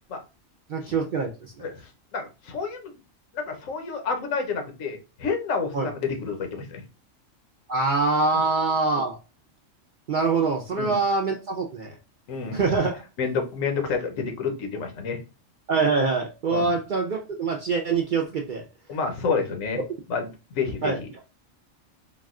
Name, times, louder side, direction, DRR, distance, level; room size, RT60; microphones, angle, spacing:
voice 1, 0.7-1.7 5.7-5.9 7.7-9.2 10.1-12.0 12.5-13.0 15.7-18.6 20.8-21.0, right 4 dB, 60° right, 2 dB, 0.5 m, -24 dB
voice 2, 1.6-2.9 3.3-6.8 10.8-11.0 12.3-12.6 13.2-15.2 16.5-16.8 18.9-19.8 20.1-20.3 20.5-21.1, left 5 dB, 85° left, 5 dB, 1.3 m, -29 dB
4.0 x 2.2 x 3.6 m, 0.29 s
omnidirectional pair, 1.3 m